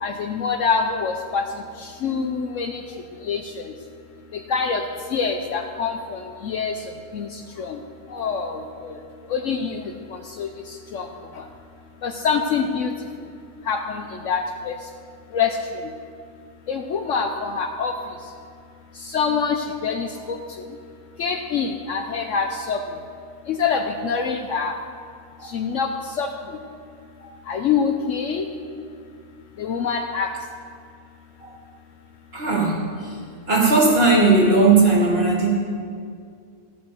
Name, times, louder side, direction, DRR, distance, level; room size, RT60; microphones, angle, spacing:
voice 1, 0.0-1.4 1.8-2.8 3.2-3.4 4.5-4.8 5.1-6.7 7.1-7.8 8.1-8.9 9.3-10.5 10.9-11.1 11.4-11.5 12.0-12.9 13.7-14.7 15.3-15.6 16.7-17.9 19.0-20.4 21.2-22.8 23.5-24.7 25.5-25.9 26.2-26.3 27.5-28.4 29.6-30.3, left 6 dB, 65° left, 4 dB, 0.9 m, -25 dB
voice 2, 32.3-33.2 33.5-35.5, right 3 dB, 40° right, -4 dB, 2.3 m, -18 dB
14.0 x 5.5 x 6.8 m, 2.2 s
omnidirectional pair, 1.6 m